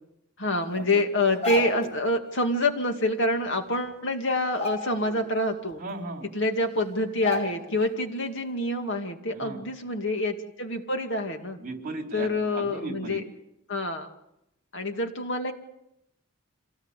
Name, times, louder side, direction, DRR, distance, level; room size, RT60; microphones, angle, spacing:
voice 1, 0.4-5.8 6.3-11.6 12.1-13.2 13.7-14.1 14.7-15.5, left 2 dB, 60° left, 5 dB, 2.4 m, -27 dB
sound 1, 1.2-2.0 3.4-3.5 3.8-4.1 4.5-5.3 5.7-5.8 6.6-6.7 7.2-7.8 8.2-8.4, left 1 dB, 30° left, 6.2 m, -33 dB
voice 2, 5.8-6.3 9.3-9.6 11.6-13.2, right 2 dB, 45° right, 3 dB, 4.0 m, -36 dB
26.5 x 18.0 x 8.4 m, 0.85 s
head